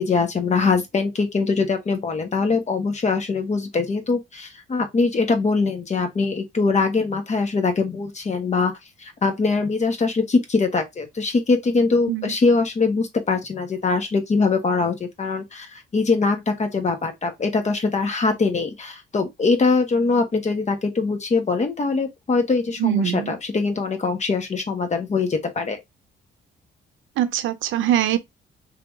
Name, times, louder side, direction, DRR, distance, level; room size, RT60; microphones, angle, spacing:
voice 1, 0.0-8.7 9.0-25.8, left 4 dB, 35° left, 1.2 m, -22 dB
voice 2, 22.8-23.3 27.2-28.2, right 11 dB, 80° right, 0.6 m, -22 dB
3.4 x 2.9 x 3.5 m
cardioid pair, 90°, 20 cm